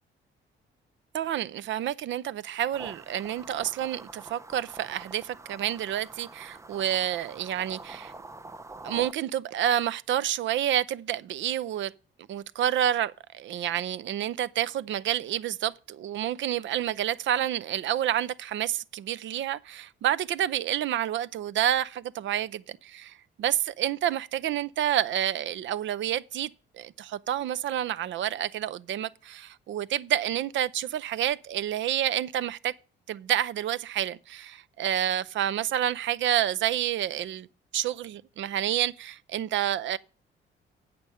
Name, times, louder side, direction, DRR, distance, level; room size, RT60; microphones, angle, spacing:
voice 1, 1.1-8.1 8.8-11.9 12.3-26.5 26.7-32.7 33.1-37.5 37.7-40.0, right 11 dB, 70° right, 0.6 m, -29 dB
sound 1, 2.7-9.1, right 2 dB, 15° right, 0.6 m, -45 dB
9.0 x 6.8 x 5.6 m
cardioid pair, 90°, 20 cm